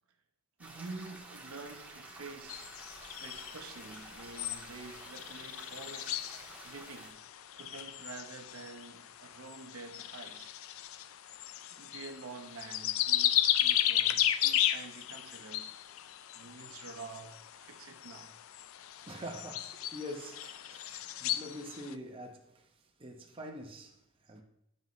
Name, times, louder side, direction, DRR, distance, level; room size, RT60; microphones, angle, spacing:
sound 1, 0.6-7.1, right 2 dB, 5° right, 1.5 m, -50 dB
voice 1, 0.6-2.8 3.1-7.2 7.6-10.5 11.7-15.7 16.3-18.3 21.3-21.5, right 3 dB, 85° right, 0.8 m, -48 dB
sound 2, 2.5-21.9, left 12 dB, 70° left, 0.4 m, -35 dB
voice 2, 19.0-24.4, equal, 25° right, 0.9 m, -45 dB
11.5 x 5.4 x 3.1 m
head